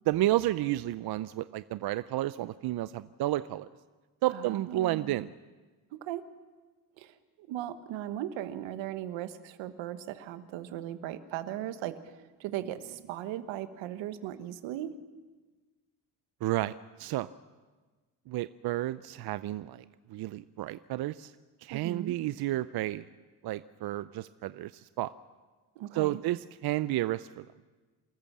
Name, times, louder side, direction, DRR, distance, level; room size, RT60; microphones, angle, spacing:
voice 1, 0.1-3.7 4.2-5.3 16.4-17.3 18.3-21.3 21.6-23.1 23.4-25.1 25.9-27.5, right 15 dB, 55° right, 15 dB, 0.6 m, -31 dB
voice 2, 4.3-5.2 5.9-6.3 7.0-15.0 21.7-22.2 25.7-26.2, right 12 dB, 75° right, 11 dB, 1.4 m, -38 dB
27.5 x 13.5 x 7.4 m, 1.3 s
supercardioid pair, 80°, 45 cm